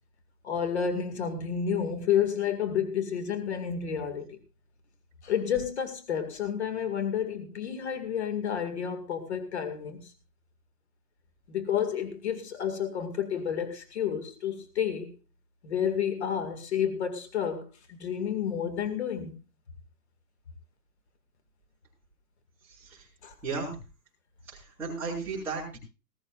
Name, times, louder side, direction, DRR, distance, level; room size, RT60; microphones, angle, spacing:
voice 1, 0.4-4.4 5.2-10.1 11.5-15.1 15.6-19.4 23.2-23.3, left 8 dB, 40° left, 2.1 m, -30 dB
voice 2, 22.6-23.1 23.4-23.8 24.5-25.8, right 4 dB, 5° right, 5.4 m, -35 dB
20.0 x 14.0 x 2.5 m
hypercardioid pair, 175°, 48 cm